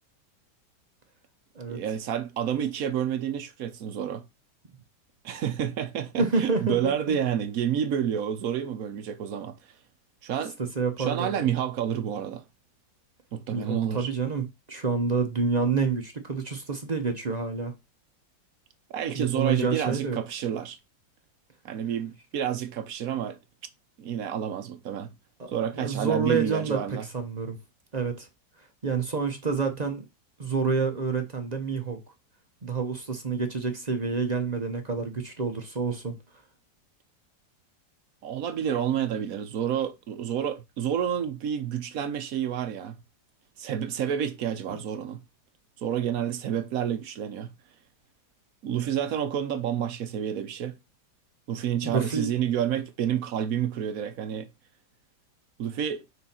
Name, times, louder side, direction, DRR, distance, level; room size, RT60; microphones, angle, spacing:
voice 1, 1.7-4.2 5.2-9.6 10.2-10.6 11.0-12.4 13.3-14.1 18.9-20.8 21.6-23.4 24.0-25.1 25.5-27.1 38.2-42.9 43.6-45.2 45.8-47.5 48.6-50.7 51.5-54.5 55.6-56.0, right 9 dB, 60° right, 1.0 m, -29 dB
voice 2, 6.2-7.1 10.8-11.5 13.5-17.7 19.1-20.2 25.4-26.8 27.1-27.6 27.9-28.3 28.8-30.0 30.4-32.0 32.6-36.1 51.8-52.3, right 5 dB, 40° right, 0.6 m, -28 dB
6.2 x 4.0 x 4.3 m
omnidirectional pair, 2.1 m